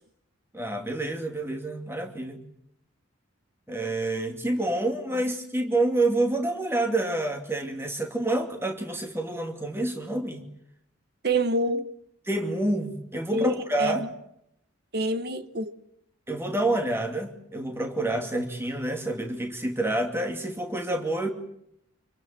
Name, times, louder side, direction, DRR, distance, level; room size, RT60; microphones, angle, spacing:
voice 1, 0.5-2.4 3.7-10.4 12.3-14.0 16.3-21.3, right 2 dB, 10° right, 2.5 m, -28 dB
voice 2, 11.2-11.9 13.3-14.1 14.9-15.7, right 1 dB, 50° right, 1.2 m, -27 dB
26.0 x 24.0 x 7.5 m
head